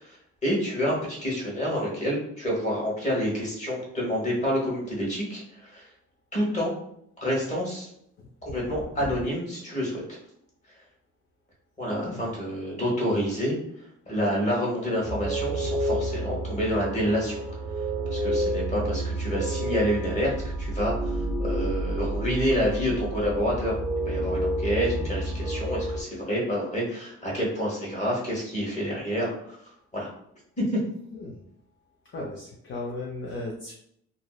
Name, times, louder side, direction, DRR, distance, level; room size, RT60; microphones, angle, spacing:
voice 1, 0.4-5.4 5.7-5.8 6.3-6.7 7.2-7.9 8.4-10.2 11.8-13.6 14.1-17.4 18.1-20.3 20.6-20.9 21.4-23.7 24.1-29.3 29.9-30.1 30.6-30.8, equal, 25° left, -4 dB, 1.1 m, -28 dB
voice 2, 11.8-12.3 31.1-31.4 32.1-33.7, left 2 dB, 40° left, -2 dB, 0.5 m, -36 dB
sound 1, 15.0-26.0, right 1 dB, 5° right, 0.6 m, -29 dB
2.6 x 2.1 x 2.3 m, 0.72 s
cardioid pair, 90°, 30 cm